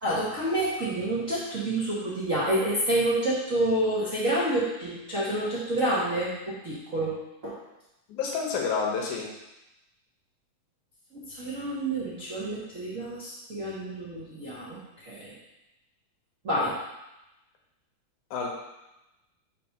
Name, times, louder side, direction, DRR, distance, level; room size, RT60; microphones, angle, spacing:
voice 1, 0.0-7.2 7.4-7.6 11.1-15.3 16.4-16.7, right 1 dB, 50° right, -9 dB, 0.9 m, -28 dB
voice 2, 8.1-9.3 18.3-18.5, left 5 dB, 75° left, 0 dB, 2.4 m, -29 dB
5.1 x 4.3 x 5.8 m, 0.95 s
omnidirectional pair, 3.6 m